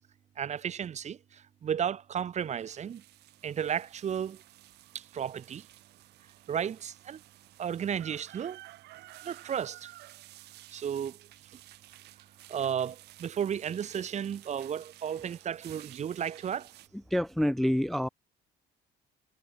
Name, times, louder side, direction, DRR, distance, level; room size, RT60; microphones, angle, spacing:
voice 1, 0.4-3.0 3.4-4.4 4.9-5.7 6.5-7.2 7.6-8.6 9.2-9.9 10.7-11.2 12.5-16.7, right 8 dB, 40° right, 1.2 m, -33 dB
sound 1, 2.4-16.9, right 16 dB, 80° right, 3.3 m, -53 dB
voice 2, 16.9-18.1, equal, ahead, 0.3 m, -27 dB
cardioid pair, 110°, 17 cm